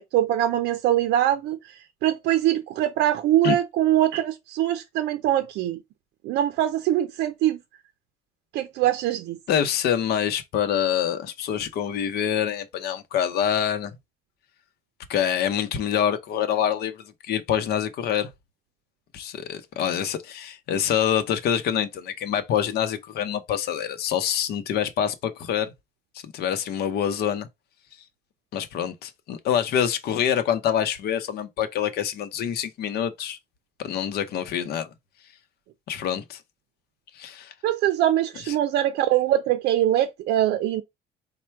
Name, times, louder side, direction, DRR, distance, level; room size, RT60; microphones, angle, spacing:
voice 1, 0.0-1.6 2.0-5.8 6.2-7.6 8.5-9.4 37.6-40.8, right 12 dB, 80° right, 0.5 m, -23 dB
voice 2, 9.5-13.9 15.1-18.3 19.1-25.7 26.2-27.5 28.5-33.4 33.8-34.9 35.9-36.4 37.1-37.5 38.5-38.6, left 9 dB, 70° left, 0.7 m, -26 dB
4.2 x 2.2 x 4.5 m
cardioid pair, 110°, 17 cm